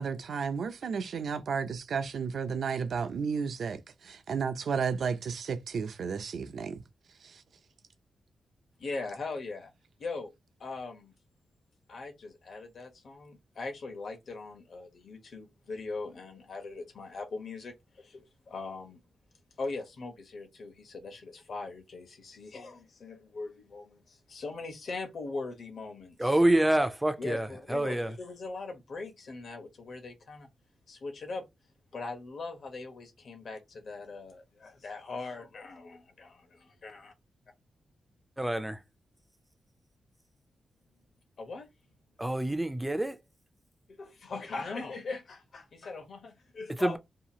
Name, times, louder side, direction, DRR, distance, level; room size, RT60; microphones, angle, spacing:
voice 1, 0.0-6.8, right 6 dB, 70° right, 0.5 m, -33 dB
voice 2, 8.8-9.7 10.0-10.3 10.6-11.1 11.9-19.0 19.6-26.4 27.2-30.5 30.9-31.5 31.9-37.1 41.4-41.7 43.9-47.0, left 3 dB, 60° left, 0.9 m, -40 dB
voice 3, 26.2-28.1 38.4-38.8 42.2-43.2 46.8-47.0, right 1 dB, 10° right, 0.4 m, -27 dB
2.8 x 2.4 x 2.8 m
wide cardioid pair, 110°, 0 cm